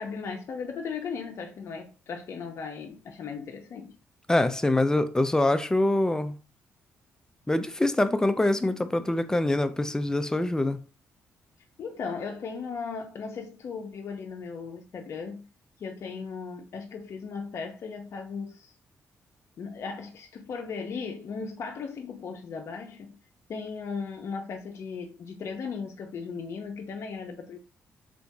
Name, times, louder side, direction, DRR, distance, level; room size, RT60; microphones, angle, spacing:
voice 1, 0.0-3.9 11.8-15.5 15.8-18.7 19.6-23.2 23.5-27.6, left 5 dB, 60° left, 0.6 m, -37 dB
voice 2, 4.3-6.4 7.5-10.8, left 2 dB, 10° left, 0.5 m, -24 dB
3.4 x 2.9 x 2.6 m
cardioid pair, 75°, 5 cm